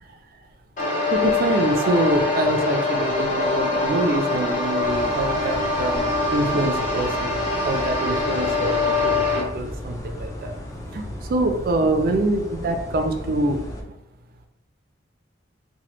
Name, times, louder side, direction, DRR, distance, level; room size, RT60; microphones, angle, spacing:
sound 1, 0.8-9.4, left 3 dB, 40° left, 0.8 m, -24 dB
voice 1, 0.9-10.6 10.9-13.6, right 2 dB, 50° right, 6 dB, 0.4 m, -25 dB
sound 2, 4.8-13.8, equal, 15° left, 0.4 m, -35 dB
2.9 x 2.2 x 3.2 m, 0.88 s
head